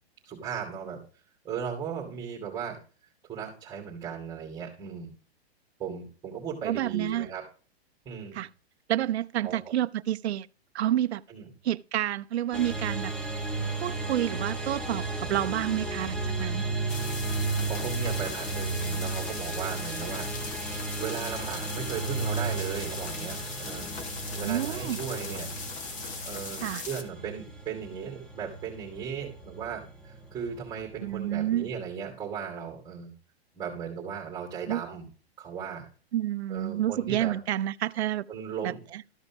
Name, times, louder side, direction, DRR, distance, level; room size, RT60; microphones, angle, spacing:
voice 1, 0.2-1.0 1.4-2.8 3.2-5.1 5.8-7.4 8.0-8.4 9.4-9.7 11.3-11.5 17.4-20.3 21.0-23.9 24.3-25.5 26.2-33.1 33.5-35.1 35.4-35.9 36.5-37.3 38.3-38.8, right 7 dB, 15° right, 2.6 m, -37 dB
voice 2, 6.6-7.3 8.3-8.5 8.9-10.5 10.7-11.2 11.6-13.1 13.8-16.6 24.4-25.0 26.6-26.8 31.0-31.7 34.7-34.8 36.1-38.3 38.6-39.0, right 12 dB, 80° right, 0.6 m, -29 dB
sound 1, 12.5-31.7, right 3 dB, ahead, 1.0 m, -34 dB
sound 2, 16.9-27.0, left 4 dB, 25° left, 1.5 m, -39 dB
13.5 x 5.2 x 6.0 m
hypercardioid pair, 150°, 32 cm